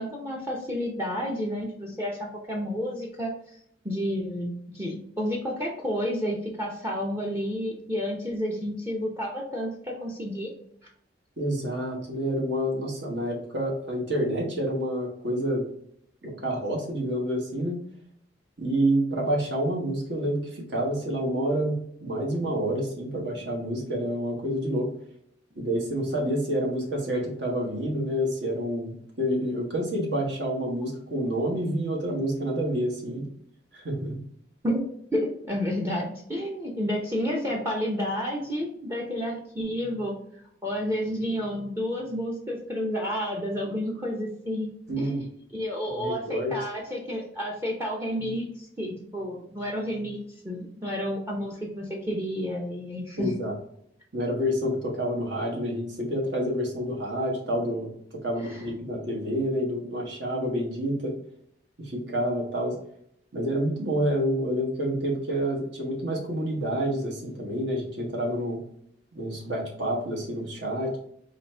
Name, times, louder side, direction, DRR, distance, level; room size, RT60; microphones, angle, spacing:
voice 1, 0.0-10.5 34.6-34.8 35.1-40.1 40.6-44.7 45.0-45.3 45.5-50.2 50.4-53.3 58.4-58.6, equal, 15° right, -2 dB, 0.6 m, -30 dB
voice 2, 11.4-15.6 16.2-17.8 18.6-24.9 25.6-33.3 33.7-34.2 44.9-45.2 46.0-46.6 53.2-53.5 54.1-57.9 58.2-61.1 61.9-62.8 63.3-68.6 69.1-71.0, equal, 70° right, -1 dB, 1.3 m, -28 dB
3.9 x 2.7 x 3.2 m, 0.69 s
head